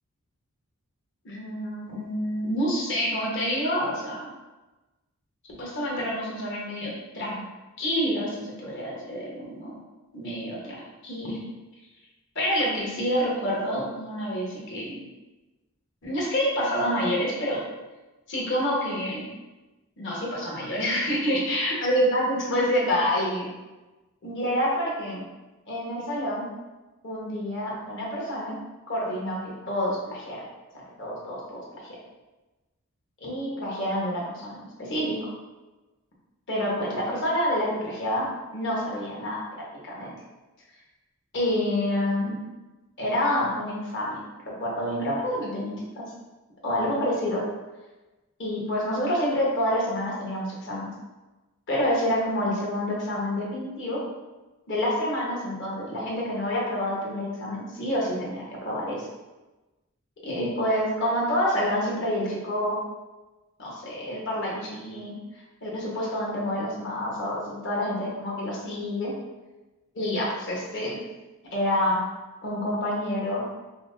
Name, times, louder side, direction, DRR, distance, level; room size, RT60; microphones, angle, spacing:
voice 1, 1.2-4.3 5.6-7.4 7.8-9.7 10.1-10.7 11.0-11.4 12.3-15.0 16.0-17.6 18.3-19.2 20.0-23.5 24.2-25.2 25.7-26.5 27.0-28.6 28.9-30.4 31.0-31.6 33.2-35.2 36.5-38.3 38.5-39.4 39.8-40.1 41.3-42.4 43.0-44.2 44.5-46.0 46.6-47.4 48.4-50.9 51.7-54.0 54.7-59.1 60.2-62.8 63.6-65.1 65.6-69.1 69.9-71.0 71.5-72.0 72.4-73.4, equal, 55° left, -4 dB, 1.1 m, -28 dB
5.5 x 2.1 x 2.6 m, 1.1 s
head